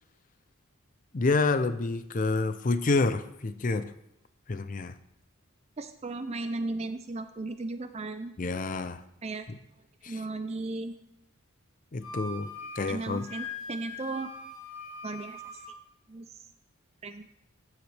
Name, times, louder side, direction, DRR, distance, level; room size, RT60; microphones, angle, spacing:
voice 1, 1.1-3.9 4.5-4.9 8.4-9.0 9.5-9.6 10.0-10.2 11.9-12.5 12.8-13.3, left 3 dB, 35° left, 12 dB, 0.5 m, -28 dB
voice 2, 5.8-8.4 9.2-9.5 10.1-11.0 12.9-14.3 15.0-15.4 16.1-16.3 17.0-17.3, right 3 dB, 30° right, 9 dB, 0.5 m, -35 dB
Wind instrument woodwind instrument, 12.0-15.7, left 3 dB, 60° left, 3.7 m, -42 dB
15.5 x 8.0 x 3.4 m, 0.83 s
head